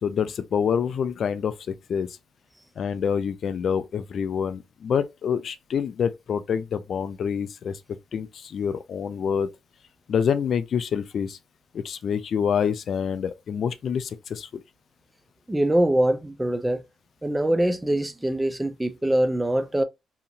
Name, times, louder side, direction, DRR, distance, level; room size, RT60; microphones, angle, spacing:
voice 1, 0.0-2.2 2.8-7.8 8.1-9.5 10.1-11.4 11.7-14.6, left 7 dB, 55° left, 0.3 m, -27 dB
voice 2, 15.5-16.8 17.2-19.8, right 1 dB, 10° right, 0.4 m, -23 dB
2.8 x 2.4 x 2.7 m
cardioid pair, 90°, 0 cm